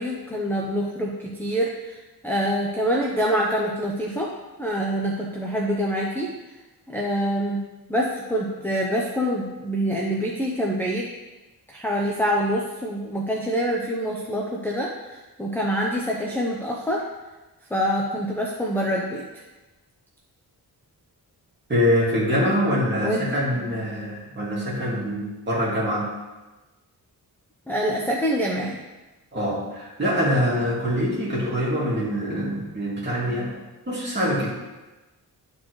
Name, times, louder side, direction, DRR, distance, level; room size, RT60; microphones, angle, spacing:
voice 1, 0.0-2.0 2.2-4.3 4.6-6.3 6.9-7.6 7.9-11.1 11.7-17.0 17.7-19.2 23.0-23.4 27.7-28.8, equal, 5° left, -3 dB, 0.7 m, -25 dB
voice 2, 21.7-26.1 29.3-33.6 33.9-34.5, equal, 30° right, -6 dB, 2.3 m, -24 dB
11.0 x 4.3 x 3.1 m, 1.1 s
wide cardioid pair, 130°, 38 cm